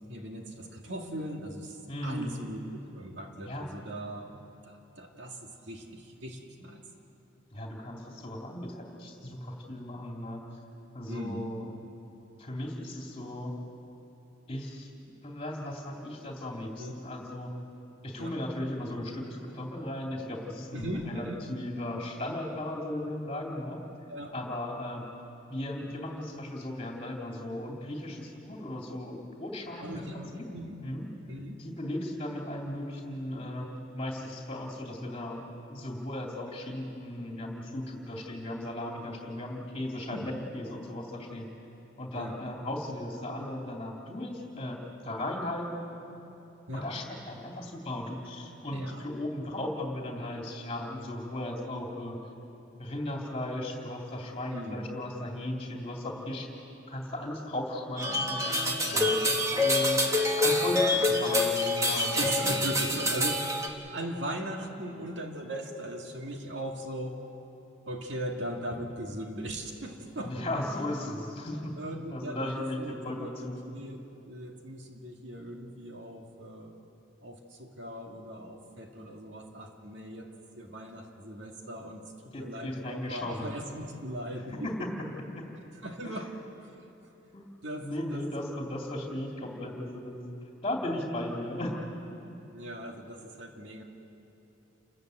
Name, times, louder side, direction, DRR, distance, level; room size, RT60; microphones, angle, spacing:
voice 1, 0.1-2.6 2.9-4.3 4.6-6.8 11.1-11.5 16.8-17.0 18.2-18.4 20.7-21.4 24.1-24.3 29.8-30.8 31.3-31.5 40.1-40.3 42.1-42.5 46.7-46.9 48.7-49.1 54.5-55.0 58.9-59.2 62.1-63.5 63.9-67.3 67.9-70.4 71.8-76.8 77.2-82.1 82.4-84.7 85.8-86.9 87.6-88.3 88.8-89.3 92.5-93.8, right 1 dB, 70° right, 2 dB, 2.1 m, -39 dB
voice 2, 1.9-2.4 3.5-3.7 7.5-10.4 10.9-11.7 12.4-13.5 14.5-17.5 18.0-23.8 24.3-25.0 25.5-30.4 30.8-31.1 31.6-33.7 33.9-35.4 35.7-41.5 42.0-45.7 46.7-52.2 52.8-56.5 56.9-59.2 59.5-60.0 60.3-62.6 70.1-71.7 72.1-73.6 82.3-83.5 84.6-84.9 85.3-85.4 87.3-87.5 87.8-90.3 90.6-92.0, left 1 dB, 30° left, 0 dB, 2.9 m, -36 dB
sound 1, 58.0-63.7, left 1 dB, 15° right, 1.3 m, -26 dB
29.0 x 14.0 x 8.0 m, 2.9 s
head